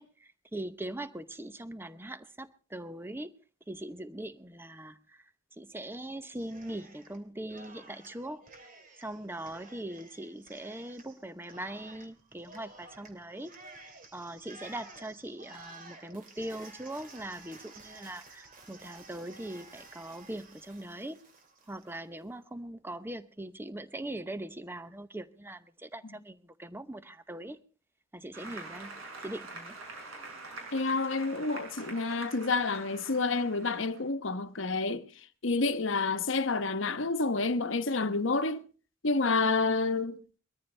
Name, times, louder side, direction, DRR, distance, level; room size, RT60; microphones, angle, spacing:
voice 1, 0.0-3.3 3.7-5.2 5.5-8.4 9.0-13.5 13.8-21.2 21.7-27.6 28.1-29.8, right 1 dB, 10° right, 0.8 m, -41 dB
Cheering, 6.3-7.2 7.5-22.0, right 3 dB, 40° right, 2.7 m, -53 dB
Applause, 28.3-34.0, right 3 dB, 85° right, 6.1 m, -45 dB
voice 2, 30.7-38.6 39.0-40.4, left 3 dB, 65° left, 1.1 m, -29 dB
22.0 x 14.0 x 3.3 m
head